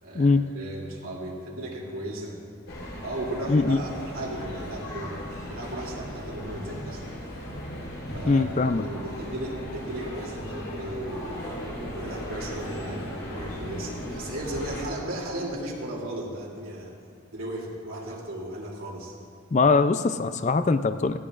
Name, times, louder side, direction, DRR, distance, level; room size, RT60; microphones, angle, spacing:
voice 1, 0.0-2.4 3.0-7.1 8.1-16.9 17.3-19.2, right 1 dB, 80° right, -3 dB, 2.9 m, -36 dB
sound 1, 2.7-14.8, equal, 75° left, 3.5 m, -37 dB
voice 2, 3.5-3.8 8.3-8.8 19.5-21.2, left 3 dB, 35° left, 10 dB, 0.3 m, -22 dB
19.5 x 15.0 x 2.5 m, 2.3 s
head